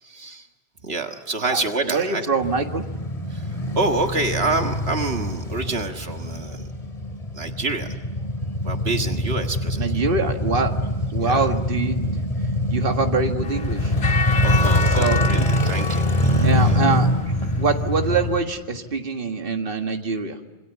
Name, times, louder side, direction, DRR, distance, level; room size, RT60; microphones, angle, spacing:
voice 1, 0.0-0.5 0.8-2.3 3.3-3.5 3.8-6.7 7.3-8.0 8.6-9.9 11.2-11.5 14.4-16.8, right 3 dB, 75° right, 5 dB, 1.9 m, -27 dB
voice 2, 1.9-2.8 9.8-10.7 11.1-12.2 12.7-13.9 15.0-15.5 16.4-17.1 17.6-20.4, right 4 dB, 60° right, 5 dB, 1.9 m, -24 dB
Male speech man speaking / Motorcycle / Idling, 2.4-18.4, left 1 dB, 35° left, 2.6 m, -24 dB
sound 1, 13.4-17.7, left 4 dB, 75° left, 1.8 m, -29 dB
27.5 x 25.5 x 8.2 m, 1.2 s
omnidirectional pair, 1.1 m